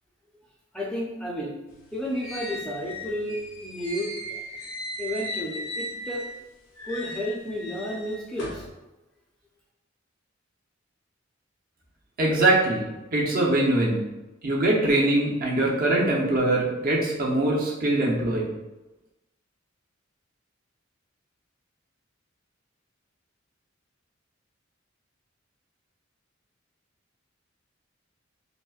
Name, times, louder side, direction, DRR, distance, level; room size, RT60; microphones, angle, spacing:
voice 1, 0.7-1.5 1.9-4.4 5.0-6.2 6.9-8.7, equal, 5° left, -5 dB, 0.5 m, -32 dB
sound 1, 1.7-6.4 6.8-8.7, equal, 80° left, 0.8 m, -37 dB
voice 2, 12.2-14.0 14.4-18.5, right 2 dB, 45° right, -3 dB, 0.8 m, -23 dB
5.0 x 2.2 x 2.4 m, 1.0 s
head